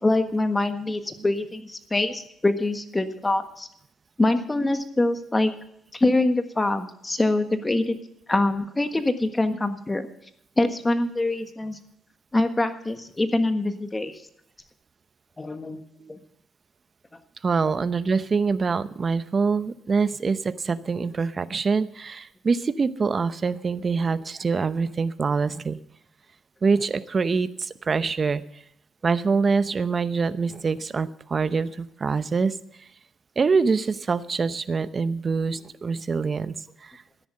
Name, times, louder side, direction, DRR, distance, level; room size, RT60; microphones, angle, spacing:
voice 1, 0.0-3.7 4.2-5.5 5.9-7.9 8.3-10.1 10.6-11.8 12.3-14.2 15.4-15.8 16.1-16.2, left 2 dB, 20° left, 8 dB, 1.5 m, -24 dB
voice 2, 17.4-25.8 26.6-28.4 29.0-32.5 33.4-36.5, right 4 dB, 35° right, 14 dB, 0.8 m, -25 dB
13.5 x 10.5 x 6.7 m, 0.73 s
cardioid pair, 90°, 0 cm